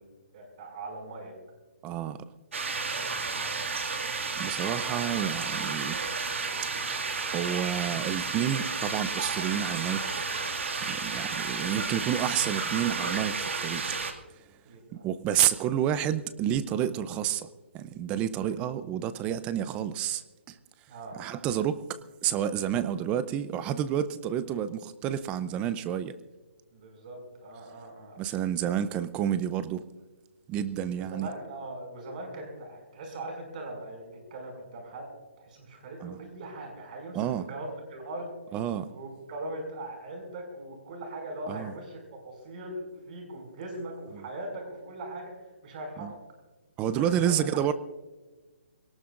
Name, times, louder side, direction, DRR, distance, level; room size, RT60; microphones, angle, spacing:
voice 1, 0.0-1.3 3.0-3.5 4.8-5.1 14.6-15.0 18.4-18.6 20.9-21.2 26.7-28.2 31.0-35.1 35.4-38.3 38.9-46.2 46.9-47.6, right 1 dB, 40° right, 3 dB, 6.0 m, -40 dB
voice 2, 1.8-2.2 4.4-6.0 7.3-10.2 10.8-14.1 14.9-17.5 17.7-20.6 21.1-21.9 22.2-26.1 28.2-29.8 30.5-31.3 36.0-36.2 37.1-37.5 38.5-38.9 41.5-41.7 44.1-44.2 46.0-46.1 46.8-47.7, right 10 dB, 15° right, 14 dB, 0.5 m, -29 dB
sound 1, 2.5-14.1, right 4 dB, 75° right, 2.1 m, -32 dB
22.0 x 18.5 x 2.5 m, 1.2 s
hypercardioid pair, 155°, 7 cm